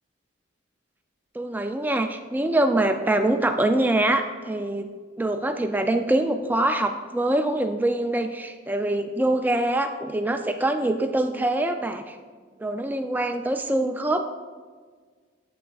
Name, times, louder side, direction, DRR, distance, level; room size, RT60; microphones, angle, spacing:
voice 1, 1.3-4.9 5.2-12.2 12.6-14.2, right 1 dB, 10° right, 6 dB, 0.3 m, -24 dB
8.4 x 7.8 x 2.4 m, 1.5 s
head